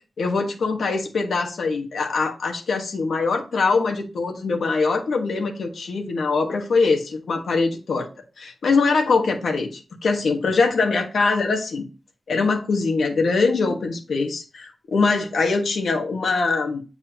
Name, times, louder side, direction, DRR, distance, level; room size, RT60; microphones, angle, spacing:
voice 1, 0.2-8.1 8.4-11.8 12.3-16.8, left 4 dB, 85° left, 3 dB, 1.3 m, -22 dB
8.5 x 4.8 x 2.7 m, 0.32 s
wide cardioid pair, 165°, 0 cm